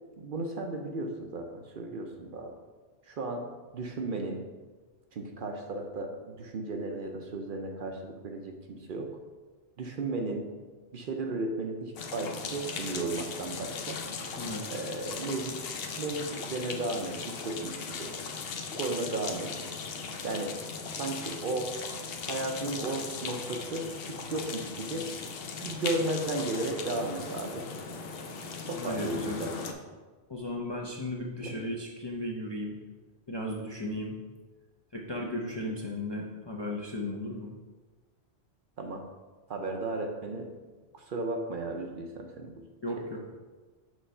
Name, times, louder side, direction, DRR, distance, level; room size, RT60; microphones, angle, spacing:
voice 1, 0.2-2.5 3.1-4.4 5.1-9.2 9.8-10.5 10.9-14.0 14.7-15.6 16.0-18.1 18.5-19.5 20.2-20.6 20.9-21.8 22.2-25.1 25.6-27.7 28.7-29.6 31.4-31.6 35.6-36.0 38.8-39.1 39.5-40.5 40.9-42.6 43.0-43.2, right 2 dB, 55° right, 3 dB, 0.7 m, -35 dB
sound 1, 12.0-29.7, left 5 dB, 60° left, 0.8 m, -38 dB
voice 2, 28.8-29.4 30.3-32.8 33.3-34.2 34.9-37.5 42.8-43.2, left 1 dB, 35° left, -2 dB, 0.4 m, -35 dB
6.2 x 3.2 x 5.4 m, 1.3 s
omnidirectional pair, 1.2 m